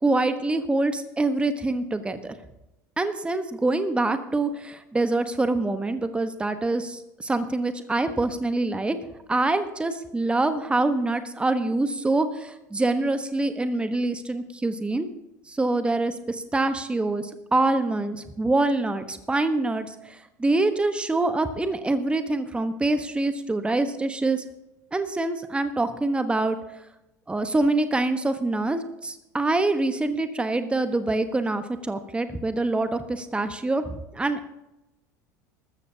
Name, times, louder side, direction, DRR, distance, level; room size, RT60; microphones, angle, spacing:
voice 1, 0.0-2.3 3.0-9.0 9.3-15.1 15.5-24.4 24.9-26.6 27.3-34.5, right 2 dB, 10° right, 10 dB, 1.1 m, -25 dB
20.0 x 13.5 x 2.8 m, 0.93 s
figure-of-eight pair, 75°, 10 cm